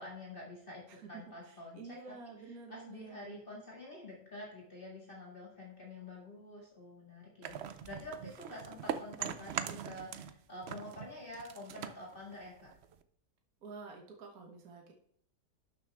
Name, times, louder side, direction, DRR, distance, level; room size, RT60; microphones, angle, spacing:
voice 1, 0.0-2.1 2.5-12.8, left 1 dB, 30° left, -3 dB, 2.1 m, -48 dB
voice 2, 0.9-3.4 13.6-14.9, right 4 dB, 60° right, 2 dB, 1.7 m, -50 dB
sound 1, 7.4-10.4 10.6-13.0, right 8 dB, 80° right, 0.5 m, -41 dB
12.0 x 6.4 x 3.4 m, 0.66 s
omnidirectional pair, 1.8 m